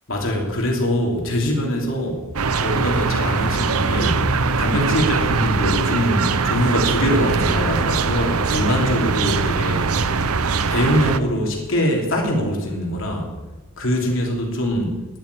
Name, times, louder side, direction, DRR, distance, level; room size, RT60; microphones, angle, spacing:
voice 1, 0.1-2.3 2.5-4.3 4.6-10.0 10.7-13.3 13.8-15.0, equal, 60° left, 0 dB, 3.2 m, -23 dB
sound 1, 2.4-11.2, right 4 dB, 80° right, 0.8 m, -21 dB
11.0 x 8.8 x 10.0 m, 1.1 s
head